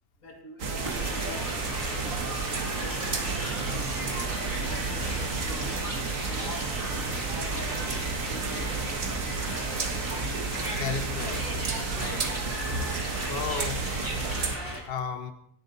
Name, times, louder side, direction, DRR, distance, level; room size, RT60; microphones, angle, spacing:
voice 1, 0.2-1.6 2.8-6.0 6.3-6.8 7.2-8.8, left 1 dB, 90° left, 1 dB, 3.4 m, -44 dB
sound 1, 0.6-14.6, right 4 dB, 90° right, 1.9 m, -31 dB
sound 2, 0.8-14.8, equal, 15° right, 4.1 m, -37 dB
sound 3, 3.3-14.7, equal, 50° right, 4.4 m, -45 dB
voice 2, 10.8-12.3 13.0-13.9 14.7-15.3, left 6 dB, 50° left, 8 dB, 1.3 m, -35 dB
25.0 x 10.5 x 4.1 m, 0.68 s
omnidirectional pair, 1.3 m